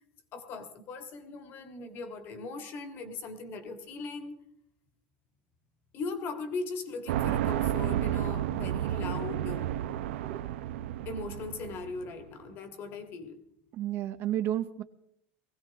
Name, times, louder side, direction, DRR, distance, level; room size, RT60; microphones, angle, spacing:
voice 1, 0.3-4.4 5.9-9.7 11.0-13.4, left 4 dB, 35° left, 8 dB, 1.7 m, -39 dB
sound 1, 7.1-12.0, right 12 dB, 85° right, 0.8 m, -31 dB
voice 2, 13.7-14.8, right 12 dB, 35° right, 11 dB, 0.6 m, -31 dB
20.5 x 16.0 x 3.5 m, 0.75 s
supercardioid pair, 160°, 6 cm